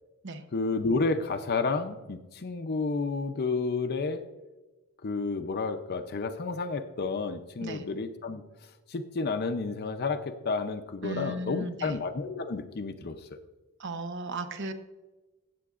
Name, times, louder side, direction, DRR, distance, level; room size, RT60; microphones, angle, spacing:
voice 1, 0.5-4.2 5.0-8.4 8.9-13.2, left 4 dB, 45° left, 7 dB, 0.5 m, -31 dB
voice 2, 11.0-12.0 13.8-14.7, right 1 dB, 55° right, 9 dB, 0.8 m, -35 dB
16.0 x 7.7 x 2.4 m, 1.2 s
head